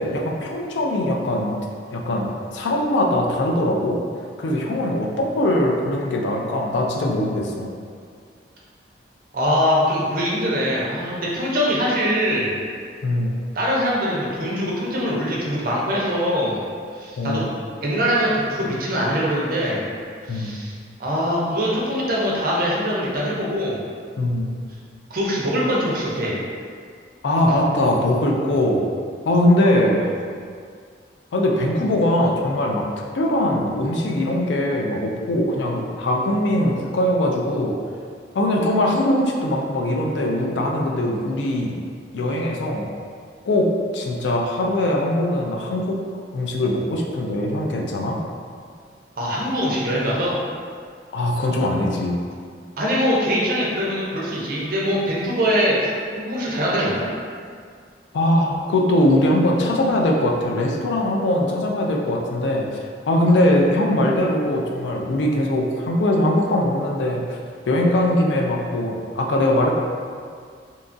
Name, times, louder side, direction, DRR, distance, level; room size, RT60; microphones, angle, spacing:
voice 1, 0.0-1.5 1.9-4.0 4.4-7.7 13.0-13.4 17.2-17.5 20.3-20.5 24.2-24.5 27.2-28.8 29.2-30.1 31.3-32.9 33.1-37.8 38.3-41.7 42.1-42.9 43.5-46.0 46.3-48.2 51.1-52.2 58.1-62.8 63.1-67.4 67.7-69.8, left 1 dB, 75° left, 0 dB, 0.4 m, -21 dB
voice 2, 9.3-12.5 13.5-16.6 16.9-17.4 17.8-19.9 20.3-20.7 21.0-23.8 25.1-26.4 27.5-27.6 49.2-50.4 52.8-57.1, equal, 55° right, -5 dB, 0.5 m, -22 dB
2.8 x 2.3 x 2.5 m, 2.1 s
head